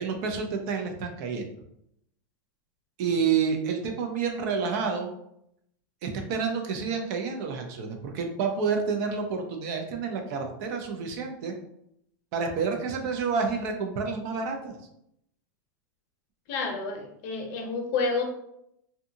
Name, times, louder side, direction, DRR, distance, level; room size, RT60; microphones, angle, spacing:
voice 1, 0.0-1.5 3.0-5.1 6.0-11.5 12.3-14.8, right 5 dB, 55° right, 3 dB, 0.6 m, -29 dB
voice 2, 16.5-18.2, left 4 dB, 50° left, 3 dB, 0.6 m, -29 dB
2.7 x 2.3 x 2.6 m, 0.77 s
hypercardioid pair, 130°, 11 cm